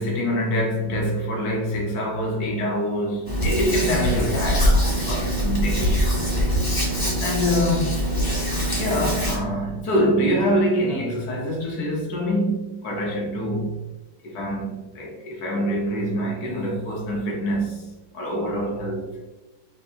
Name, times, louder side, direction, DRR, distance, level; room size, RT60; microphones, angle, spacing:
voice 1, 0.0-6.5 7.2-8.1 8.8-13.7 14.2-17.9 18.1-19.3, equal, 60° left, 1.6 m, -25 dB
Hands, 3.3-9.4, equal, 20° left, 0.6 m, -23 dB
6.1 x 2.4 x 2.8 m
omnidirectional pair, 2.0 m